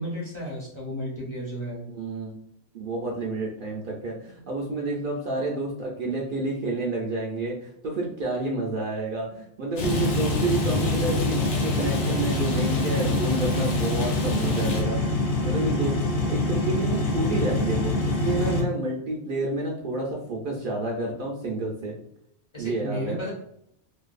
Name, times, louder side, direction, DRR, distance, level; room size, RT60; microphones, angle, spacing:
voice 1, 0.0-1.8 22.5-23.3, equal, 35° left, -5 dB, 0.6 m, -33 dB
voice 2, 1.9-2.3 2.7-15.0 15.4-22.0 22.6-23.2, right 2 dB, 60° right, -2 dB, 0.6 m, -29 dB
Rain, 9.8-14.8, left 2 dB, 85° left, 0.9 m, -33 dB
sound 1, 9.8-18.6, left 2 dB, 55° left, 0.9 m, -25 dB
2.5 x 2.2 x 2.4 m, 0.74 s
omnidirectional pair, 1.2 m